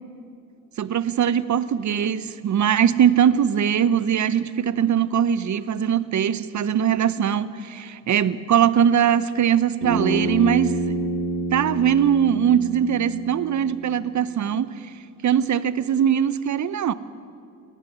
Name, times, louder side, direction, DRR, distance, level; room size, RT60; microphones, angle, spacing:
voice 1, 0.8-11.0 11.5-14.9 15.2-16.9, right 9 dB, 45° right, 16 dB, 1.0 m, -21 dB
Bass guitar, 9.8-14.1, right 2 dB, 90° right, 7.0 m, -28 dB
20.5 x 15.0 x 9.5 m, 2.5 s
hypercardioid pair, 50°, 39 cm